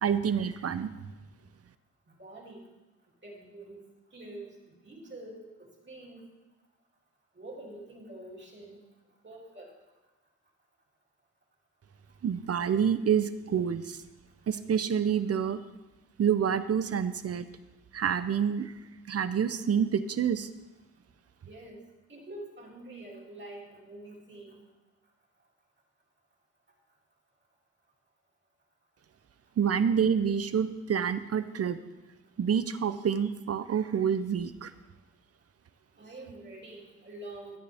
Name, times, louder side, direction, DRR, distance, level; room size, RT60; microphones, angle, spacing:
voice 1, 0.0-0.9 12.2-14.0 14.5-15.6 16.2-17.4 17.9-18.7 19.1-20.5 29.6-31.8 32.4-34.7, right 7 dB, 55° right, 13 dB, 0.6 m, -27 dB
voice 2, 2.2-2.7 3.2-3.9 4.1-4.5 4.8-6.2 7.4-8.8 9.2-9.7 21.4-21.8 22.1-24.6 36.0-37.6, right 1 dB, 40° right, -3 dB, 2.9 m, -46 dB
13.5 x 9.5 x 3.5 m, 1.1 s
wide cardioid pair, 110°, 29 cm